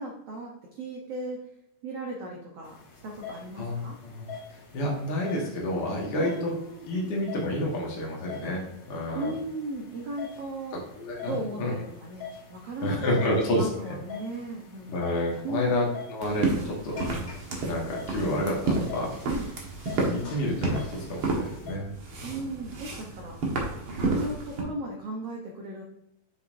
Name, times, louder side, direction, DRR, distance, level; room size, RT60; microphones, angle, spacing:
voice 1, 0.0-1.4 1.8-2.8 3.0-4.0 6.2-7.1 9.1-10.8 11.2-12.2 12.5-15.8 16.9-17.1 19.3-19.5 22.2-23.4 24.0-25.8, right 2 dB, 85° right, -1 dB, 1.3 m, -36 dB
sound 1, 2.6-21.7, left 6 dB, 60° left, 1.2 m, -45 dB
voice 2, 3.6-4.3 4.7-6.5 6.9-8.6 8.9-9.3 11.0-11.7 12.8-13.7 14.9-17.0 17.6-19.1 20.1-21.9 22.2-22.3, left 1 dB, 75° left, -3 dB, 0.9 m, -29 dB
sound 2, 16.2-24.6, right 3 dB, 55° right, 1.5 m, -31 dB
8.1 x 6.6 x 2.6 m, 0.87 s
omnidirectional pair, 4.2 m